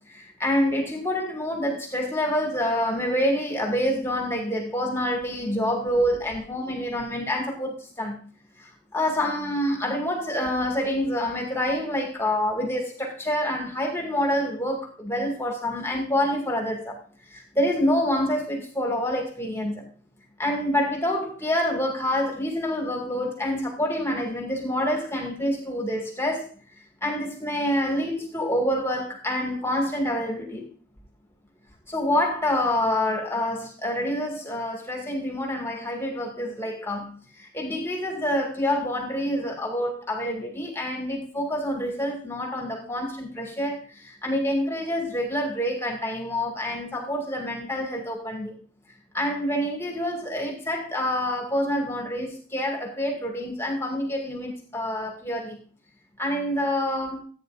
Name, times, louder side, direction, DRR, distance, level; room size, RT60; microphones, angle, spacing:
voice 1, 0.1-8.2 8.9-17.0 17.3-19.9 20.4-26.5 27.0-30.7 31.9-48.5 49.1-55.6 56.2-57.2, left 1 dB, 15° left, 2.1 m, -27 dB
15.0 x 9.1 x 2.5 m
head